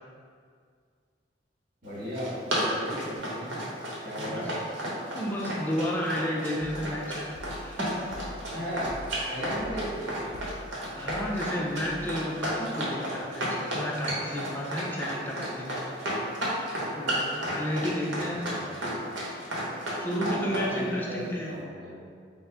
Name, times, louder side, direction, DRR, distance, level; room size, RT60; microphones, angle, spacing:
voice 1, 1.8-3.6 4.0-4.5 8.5-8.9 9.2-10.4 18.3-18.7 20.2-22.0, equal, 50° right, -9 dB, 1.3 m, -36 dB
Run, 1.9-20.7, right 1 dB, 85° right, 0.9 m, -32 dB
voice 2, 4.2-4.5 5.1-7.9 11.0-15.9 16.9-18.5 20.0-21.5, equal, 10° left, -3 dB, 0.4 m, -32 dB
sound 1, 6.6-12.4, left 1 dB, 85° left, 0.4 m, -45 dB
4.6 x 2.1 x 3.3 m, 2.1 s
head